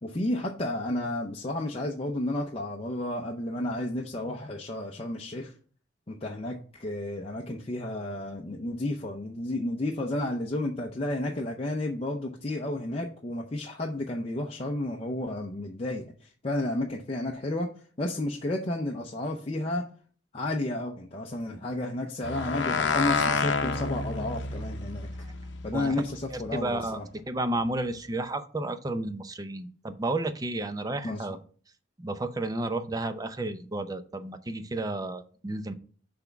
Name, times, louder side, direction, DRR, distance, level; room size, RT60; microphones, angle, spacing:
voice 1, 0.0-5.5 6.1-17.7 18.0-19.9 20.3-25.1 25.6-27.1 31.0-31.2, left 1 dB, 30° left, 0 dB, 0.6 m, -32 dB
sound 1, 22.2-26.9, left 4 dB, 70° left, 0.7 m, -30 dB
voice 2, 26.3-27.0 27.3-31.4 32.0-35.7, right 2 dB, 20° right, 10 dB, 0.5 m, -32 dB
5.9 x 3.4 x 5.8 m, 0.42 s
head